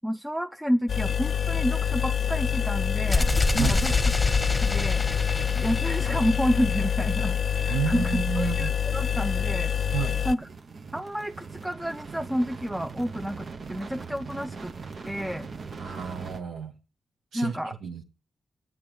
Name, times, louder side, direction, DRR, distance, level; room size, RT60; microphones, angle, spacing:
voice 1, 0.0-4.0 4.6-5.0 5.5-7.4 7.6-9.7 10.2-10.5 10.9-14.7 15.0-15.5 17.3-17.7, equal, 10° right, 7 dB, 0.6 m, -29 dB
sound 1, 0.9-10.3, left 8 dB, 60° left, 0.6 m, -26 dB
sound 2, 3.1-6.9, left 2 dB, 20° left, 1.1 m, -26 dB
voice 2, 7.7-8.7 9.9-10.2 15.8-16.7 17.3-18.0, right 7 dB, 85° right, 2 dB, 1.2 m, -30 dB
sound 3, 8.8-16.4, right 4 dB, 60° right, 0.9 m, -41 dB
9.6 x 7.1 x 7.8 m, 0.33 s
supercardioid pair, 45°, 0 cm